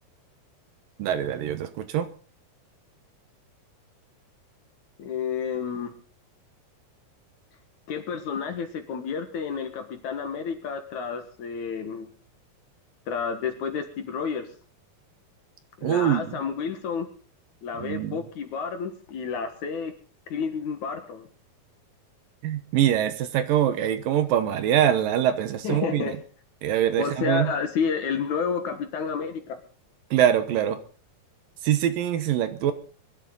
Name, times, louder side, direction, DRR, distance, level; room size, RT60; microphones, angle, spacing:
voice 1, 1.0-2.1 15.8-16.4 17.8-18.2 22.4-26.0 26.6-27.5 30.1-30.8 31.6-32.7, right 10 dB, 75° right, 10 dB, 2.7 m, -24 dB
voice 2, 5.0-5.9 7.9-12.1 13.1-14.5 15.8-17.1 17.6-19.9 20.3-21.3 25.6-26.2 27.0-29.6, left 6 dB, 60° left, 7 dB, 2.6 m, -30 dB
22.5 x 12.0 x 4.0 m, 0.40 s
omnidirectional pair, 4.2 m